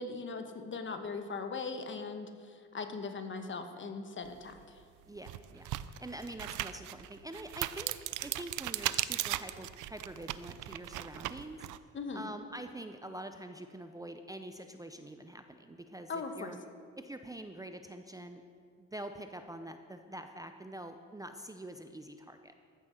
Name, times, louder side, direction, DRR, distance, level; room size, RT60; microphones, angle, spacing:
voice 1, 0.0-4.8 11.9-12.3 16.1-16.5, left 4 dB, 40° left, 7 dB, 1.2 m, -40 dB
sound 1, 4.5-4.6 5.2-11.8, right 15 dB, 85° right, 0.5 m, -37 dB
voice 2, 5.1-5.7 6.0-7.9 8.2-11.7 12.1-16.6 17.0-18.4 18.8-22.5, right 1 dB, 10° right, 7 dB, 0.6 m, -45 dB
14.5 x 6.3 x 6.4 m, 2.1 s
cardioid pair, 90°, 30 cm